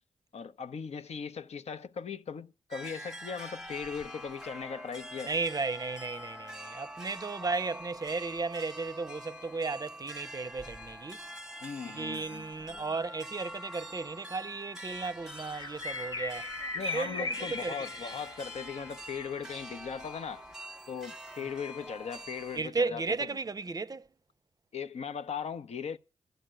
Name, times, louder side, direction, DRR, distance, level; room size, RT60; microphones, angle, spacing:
voice 1, 0.3-5.3 7.4-7.5 11.6-13.0 16.7-20.5 20.9-23.3 24.7-26.0, left 6 dB, 70° left, 0.8 m, -39 dB
sound 1, 2.7-22.6, equal, 5° right, 1.0 m, -45 dB
voice 2, 5.3-11.2 11.9-16.5 16.9-17.7 22.5-24.1, right 4 dB, 35° right, 0.6 m, -34 dB
sound 2, 15.0-19.7 20.5-20.6, left 3 dB, 40° left, 1.0 m, -39 dB
12.5 x 7.9 x 7.9 m
cardioid pair, 50°, 12 cm